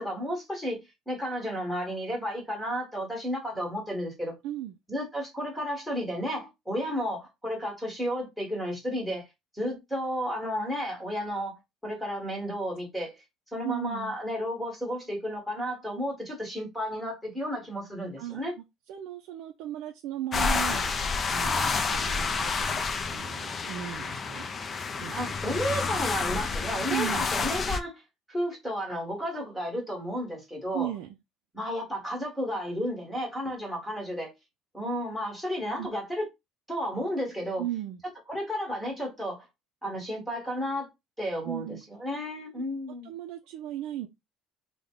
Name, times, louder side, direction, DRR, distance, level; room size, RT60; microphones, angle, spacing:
voice 1, 0.0-4.3 4.9-9.3 9.5-13.2 13.5-18.5 25.1-28.0 28.3-30.9 31.5-34.3 34.7-36.3 36.7-37.6 38.3-39.4 39.8-40.9 41.2-43.1, equal, ahead, 1.3 m, -32 dB
voice 2, 4.4-4.8 13.6-14.2 18.2-24.5 25.0-25.1 25.9-26.0 26.9-27.2 30.7-31.2 35.8-35.9 37.6-38.0 41.4-41.8 42.6-42.7 43.0-44.1, right 13 dB, 65° right, 0.4 m, -36 dB
sound 1, 20.3-27.8, left 4 dB, 25° left, 0.3 m, -29 dB
3.5 x 2.1 x 3.6 m
cardioid pair, 180°, 0 cm